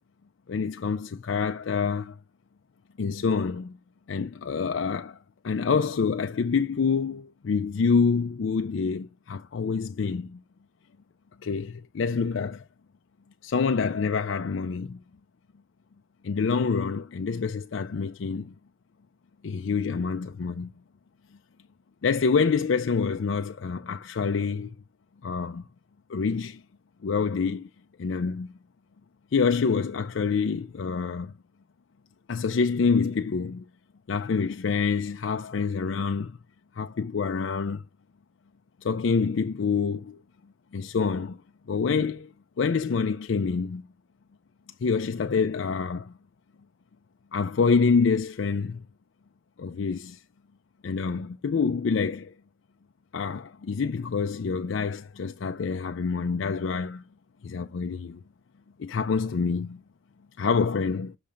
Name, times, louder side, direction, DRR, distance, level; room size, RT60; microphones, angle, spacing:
voice 1, 0.5-2.2 3.0-3.8 4.1-5.2 5.4-10.4 11.4-12.6 13.4-15.0 16.2-18.5 19.4-20.7 22.0-24.7 25.2-25.6 26.1-26.6 27.0-27.7 28.0-28.5 29.3-31.3 32.3-33.6 34.1-36.4 36.8-37.8 38.8-40.2 40.7-41.4 41.7-43.8 44.8-46.1 47.3-48.8 49.6-50.2 50.8-52.3 53.1-57.0 57.4-58.2 58.8-59.8 60.4-61.2, left 5 dB, 70° left, 0.4 m, -27 dB
7.1 x 3.2 x 5.0 m
head